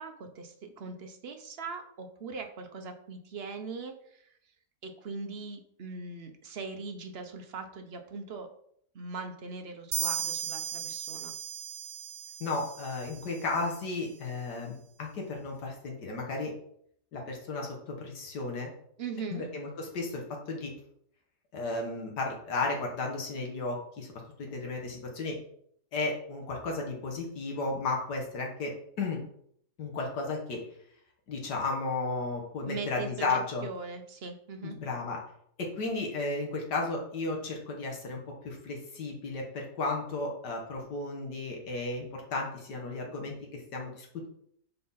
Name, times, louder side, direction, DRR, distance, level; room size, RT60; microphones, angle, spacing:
voice 1, 0.0-4.2 4.8-8.5 8.9-11.3 19.0-19.4 32.6-34.8, right 4 dB, 50° right, 5 dB, 0.8 m, -40 dB
sound 1, 9.9-13.5, right 9 dB, 90° right, 1.2 m, -36 dB
voice 2, 12.4-16.5 17.1-18.7 19.3-20.7 21.5-24.1 24.4-25.4 25.9-29.2 29.8-30.6 31.3-33.7 34.6-35.2 35.6-44.3, left 3 dB, 80° left, 0 dB, 1.8 m, -34 dB
5.5 x 4.3 x 5.6 m, 0.67 s
omnidirectional pair, 1.8 m